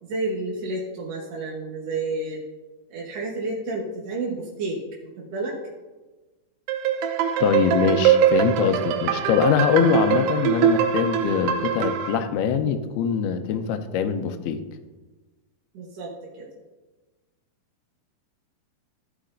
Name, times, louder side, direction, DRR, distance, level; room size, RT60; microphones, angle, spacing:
voice 1, 0.0-2.4 2.9-5.5 15.7-16.5, right 2 dB, 70° right, -3 dB, 1.6 m, -30 dB
sound 1, 6.7-12.2, right 9 dB, 85° right, 2.7 m, -22 dB
voice 2, 7.4-14.6, left 7 dB, 85° left, 8 dB, 2.6 m, -23 dB
14.5 x 8.5 x 2.6 m, 1.2 s
omnidirectional pair, 4.5 m